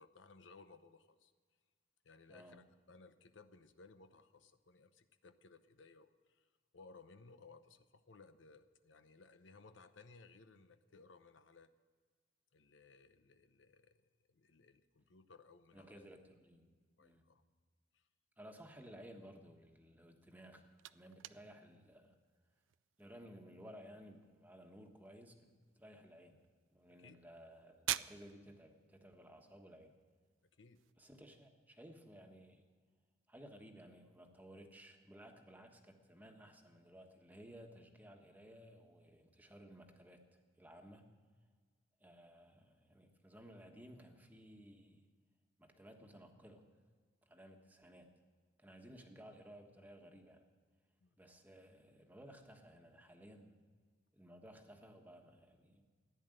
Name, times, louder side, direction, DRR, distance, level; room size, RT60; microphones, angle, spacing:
voice 1, 0.0-1.3 2.0-6.5 6.7-11.7 12.5-14.0 14.3-16.0 17.0-17.4 17.9-18.0 27.0-27.1 30.6-30.8 51.0-51.2, left 4 dB, 80° left, 10 dB, 0.8 m, -61 dB
voice 2, 2.3-2.6 15.7-17.2 18.4-20.6 20.9-22.1 23.0-25.4 25.7-26.4 26.7-29.9 31.0-32.6 33.3-41.1 42.0-45.1 45.6-46.6 47.3-48.1 48.6-50.5 51.2-53.5 54.1-55.9, equal, 10° right, 3 dB, 1.3 m, -57 dB
sound 1, 20.2-30.9, right 13 dB, 90° right, 0.4 m, -50 dB
14.5 x 10.5 x 7.8 m, 1.6 s
head